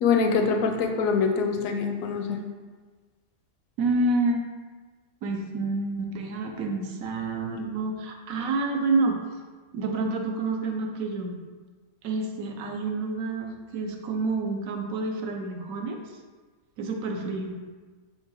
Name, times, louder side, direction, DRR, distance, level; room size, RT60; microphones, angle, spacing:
voice 1, 0.0-2.4, left 5 dB, 75° left, 4 dB, 1.0 m, -24 dB
voice 2, 3.8-4.4 5.2-9.2 9.7-11.4 12.0-16.0 16.8-17.6, right 3 dB, 80° right, 3 dB, 1.0 m, -28 dB
4.5 x 3.6 x 2.9 m, 1.4 s
omnidirectional pair, 1.5 m